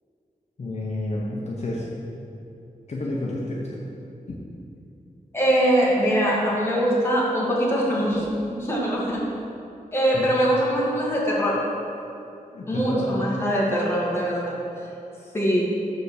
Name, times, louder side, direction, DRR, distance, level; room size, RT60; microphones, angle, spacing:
voice 1, 0.6-1.8 2.9-3.8 10.1-10.3 12.5-13.2, left 2 dB, 50° left, -4 dB, 0.9 m, -30 dB
voice 2, 5.3-9.3 9.9-11.6 12.7-14.5 15.3-15.6, equal, 15° left, -6 dB, 1.8 m, -22 dB
6.8 x 5.1 x 6.5 m, 2.7 s
wide cardioid pair, 135°, 14 cm